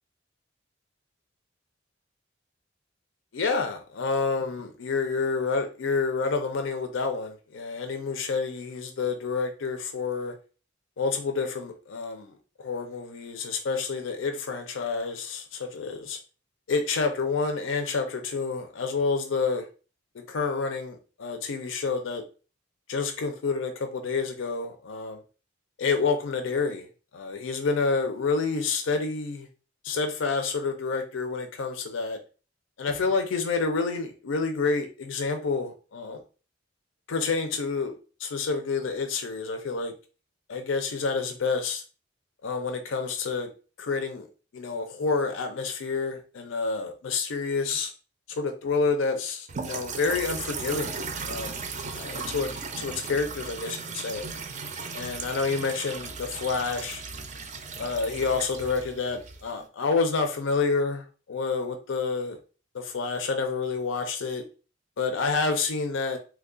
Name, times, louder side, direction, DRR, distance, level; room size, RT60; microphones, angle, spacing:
voice 1, 3.3-10.3 11.0-16.2 16.7-19.7 20.1-22.2 22.9-25.2 25.8-26.9 27.1-29.5 29.8-32.2 32.8-36.2 37.1-37.9 38.2-39.9 40.5-41.8 42.4-43.5 43.8-44.3 44.5-47.9 48.3-50.9 51.2-51.6 51.9-52.5 52.8-54.3 54.9-57.0 57.8-62.4 62.7-64.4 65.0-66.2, left 4 dB, 75° left, 5 dB, 0.5 m, -28 dB
sound 1, 49.5-59.6, right 4 dB, 40° right, 0.4 m, -36 dB
3.1 x 2.3 x 3.6 m, 0.35 s
head